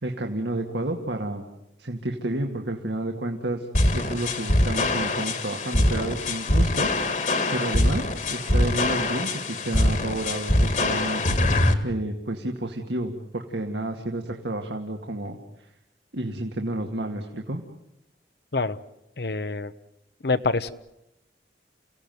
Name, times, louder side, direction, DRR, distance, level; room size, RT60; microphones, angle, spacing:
voice 1, 0.0-1.5 1.8-3.7 3.9-11.2 11.6-15.4 16.1-17.6, right 1 dB, 75° right, 2 dB, 2.1 m, -30 dB
sound 1, 3.7-11.7, left 1 dB, 45° left, 2.0 m, -23 dB
voice 2, 19.2-19.7 20.2-20.7, left 3 dB, 65° left, 12 dB, 0.9 m, -25 dB
29.5 x 16.5 x 9.3 m, 0.86 s
head